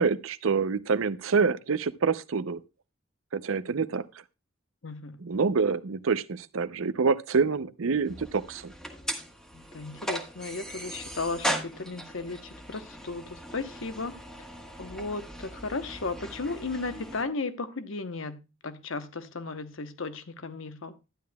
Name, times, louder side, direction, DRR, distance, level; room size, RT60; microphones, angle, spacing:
voice 1, 0.0-2.6 3.3-4.0 5.2-8.7, right 5 dB, 80° right, 0.6 m, -26 dB
voice 2, 4.8-5.2 9.5-14.2 14.8-20.9, left 3 dB, 70° left, 1.0 m, -35 dB
sound 1, 8.0-17.2, equal, 5° left, 1.4 m, -38 dB
12.5 x 10.5 x 2.2 m
head